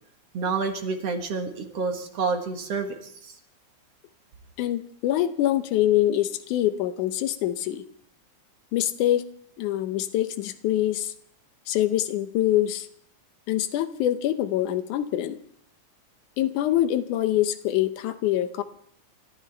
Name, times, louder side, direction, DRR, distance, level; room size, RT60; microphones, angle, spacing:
voice 1, 0.3-3.4, right 4 dB, 60° right, 4 dB, 2.4 m, -29 dB
voice 2, 4.6-7.9 8.7-9.3 9.6-11.1 11.7-12.9 13.5-15.4 16.4-18.6, left 13 dB, 85° left, 10 dB, 2.3 m, -24 dB
29.0 x 14.0 x 3.4 m, 0.66 s
omnidirectional pair, 3.5 m